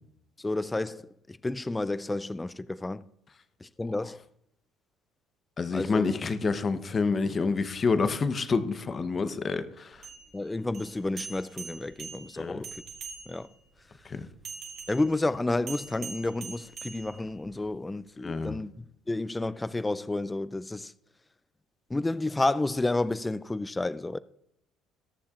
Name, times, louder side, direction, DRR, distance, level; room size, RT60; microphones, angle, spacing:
voice 1, 0.4-3.0 3.6-4.2 5.7-6.0 10.3-12.8 13.3-13.5 14.9-20.9 21.9-24.2, left 2 dB, 15° left, 0.3 m, -31 dB
voice 2, 5.6-10.1 12.4-12.6 14.0-14.3 18.2-18.6, left 4 dB, 30° left, 0.8 m, -28 dB
sound 1, 9.9-13.6 14.4-17.6, right 5 dB, 50° right, 2.0 m, -43 dB
20.0 x 6.9 x 2.4 m
supercardioid pair, 100°, 0 cm